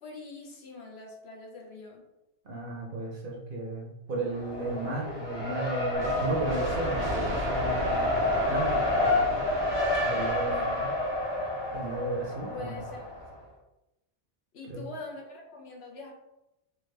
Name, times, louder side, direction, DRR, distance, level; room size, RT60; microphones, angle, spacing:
voice 1, 0.0-2.0 10.5-10.7 12.5-13.1 14.5-16.1, left 3 dB, 65° left, 0 dB, 1.0 m, -43 dB
voice 2, 2.4-9.5 10.0-10.9 11.7-12.8 14.7-14.8, right 2 dB, 55° right, -2 dB, 0.8 m, -34 dB
Race car auto racing, 4.2-13.3, left 1 dB, 30° left, 0.6 m, -29 dB
sound 1, 5.9-11.5, right 1 dB, 85° right, 1.2 m, -36 dB
3.5 x 2.4 x 3.2 m, 0.91 s
omnidirectional pair, 1.2 m